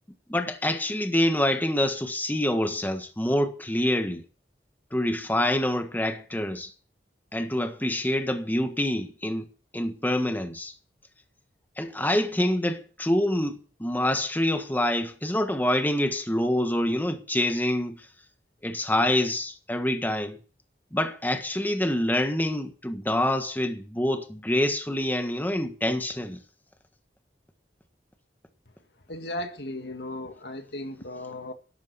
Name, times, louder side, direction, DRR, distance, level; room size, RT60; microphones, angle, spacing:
voice 1, 0.3-4.2 4.9-6.7 7.3-9.5 9.7-10.7 11.8-18.0 18.6-20.4 20.9-26.4, left 1 dB, 10° left, 1.5 m, -26 dB
voice 2, 29.1-31.5, left 1 dB, 70° left, 1.9 m, -36 dB
12.0 x 12.0 x 6.9 m
head